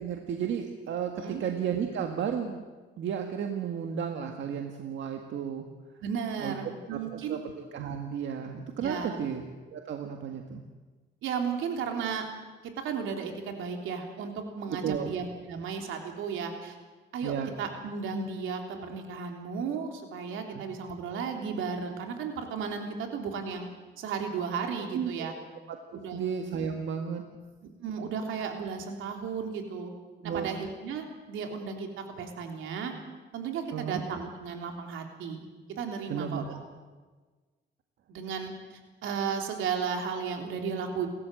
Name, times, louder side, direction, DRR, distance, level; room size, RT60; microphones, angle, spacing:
voice 1, 0.0-2.6 3.0-5.7 6.4-6.6 6.9-9.4 9.7-10.6 14.7-15.1 17.2-17.5 20.5-20.7 24.9-25.3 25.7-27.2 30.2-30.5 33.7-34.0 36.1-36.5, right 7 dB, 70° right, 4 dB, 1.8 m, -33 dB
voice 2, 6.0-7.4 8.8-9.2 11.2-12.3 12.8-16.8 17.1-23.7 24.0-25.3 25.9-26.2 27.8-29.9 30.2-31.9 32.2-32.9 33.3-36.6 38.1-41.1, right 6 dB, 85° right, 3 dB, 3.4 m, -34 dB
29.5 x 13.5 x 7.9 m, 1.3 s
cardioid pair, 90°, 20 cm